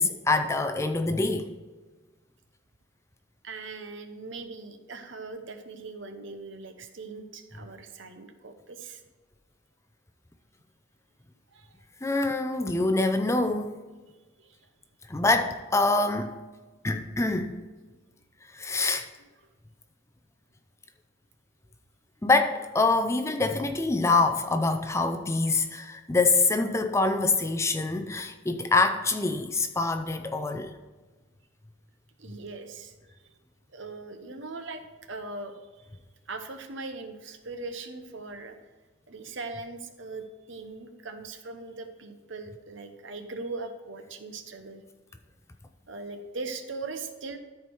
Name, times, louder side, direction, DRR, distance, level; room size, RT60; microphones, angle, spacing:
voice 1, 0.0-1.5 12.0-13.8 15.1-16.3 16.8-17.6 18.5-19.1 22.2-30.7, left 3 dB, 15° left, 0.4 m, -25 dB
voice 2, 3.4-9.0 11.5-11.8 14.1-14.7 32.2-33.4 33.7-35.9 36.3-38.6 39.1-44.8 45.9-47.4, right 3 dB, 65° right, 0.9 m, -40 dB
13.5 x 4.5 x 4.6 m
head